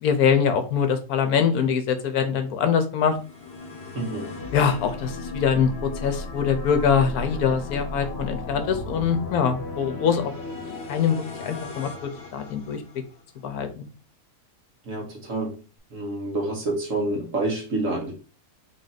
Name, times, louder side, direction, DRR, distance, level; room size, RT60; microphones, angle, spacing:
voice 1, 0.0-3.2 4.5-5.7 6.0-10.3 10.9-11.9 12.3-12.8 13.4-13.9, left 7 dB, 75° left, 1.1 m, -23 dB
sound 1, 3.0-13.2, left 3 dB, 45° left, 1.1 m, -35 dB
voice 2, 3.9-4.3 14.8-15.6 15.9-18.1, right 2 dB, 55° right, 1.5 m, -28 dB
3.7 x 2.6 x 4.0 m
omnidirectional pair, 1.6 m